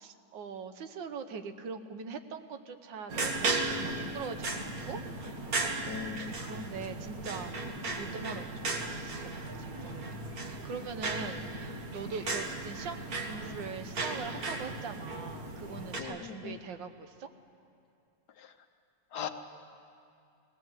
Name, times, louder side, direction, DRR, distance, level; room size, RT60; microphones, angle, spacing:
voice 1, 0.0-4.5 4.9-5.7 6.1-7.6 8.0-9.4 9.7-10.2 10.4-17.3, right 5 dB, 80° right, 8 dB, 1.6 m, -42 dB
sound 1, 3.1-16.0, right 3 dB, 50° right, 1.9 m, -36 dB
voice 2, 5.9-6.3 16.0-16.6 18.4-18.5 19.1-19.3, left 7 dB, 65° left, 7 dB, 1.4 m, -39 dB
20.0 x 17.0 x 8.0 m, 2.6 s
omnidirectional pair, 2.0 m